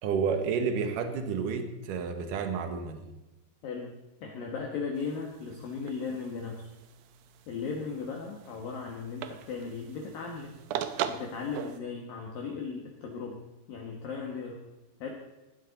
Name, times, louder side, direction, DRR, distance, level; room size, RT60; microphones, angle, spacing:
voice 1, 0.0-3.1, right 6 dB, 60° right, 6 dB, 2.4 m, -30 dB
voice 2, 3.6-4.0 4.2-6.7 7.5-10.5 11.1-13.4 13.7-14.6 15.0-15.1, left 5 dB, 60° left, 0 dB, 2.7 m, -37 dB
sound 1, 4.9-11.8, right 9 dB, 85° right, 2.1 m, -40 dB
18.5 x 12.5 x 4.1 m, 1.0 s
omnidirectional pair, 5.3 m